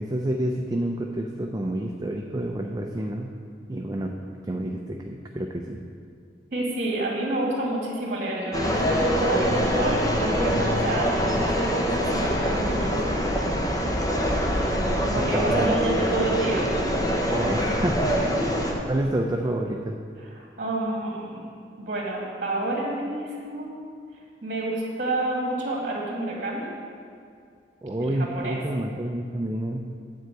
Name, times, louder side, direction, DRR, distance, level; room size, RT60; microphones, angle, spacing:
voice 1, 0.0-3.3 3.7-4.1 4.4-5.8 15.1-15.8 17.3-18.3 18.9-20.0 27.8-29.9, right 1 dB, 20° right, 1 dB, 0.5 m, -28 dB
voice 2, 6.5-13.0 13.5-13.6 15.1-16.7 18.1-18.5 20.6-21.4 21.8-23.7 24.4-26.7 28.0-28.6, right 2 dB, 45° right, -3 dB, 2.0 m, -28 dB
sound 1, 8.5-18.7, equal, 20° left, 1.0 m, -24 dB
9.4 x 4.6 x 7.8 m, 2.3 s
head